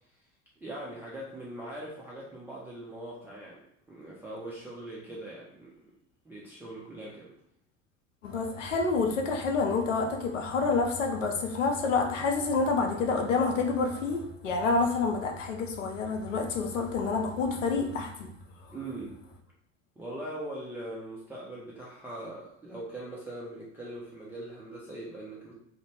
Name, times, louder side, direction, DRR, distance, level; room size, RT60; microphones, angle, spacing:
voice 1, 0.6-3.6 3.9-5.9 6.3-7.3 18.7-19.2 20.0-25.5, right 1 dB, 5° right, 0.4 m, -41 dB
voice 2, 8.2-18.3 18.6-18.7, left 4 dB, 85° left, 0.6 m, -28 dB
2.6 x 2.1 x 3.0 m
figure-of-eight pair, 75°, 37 cm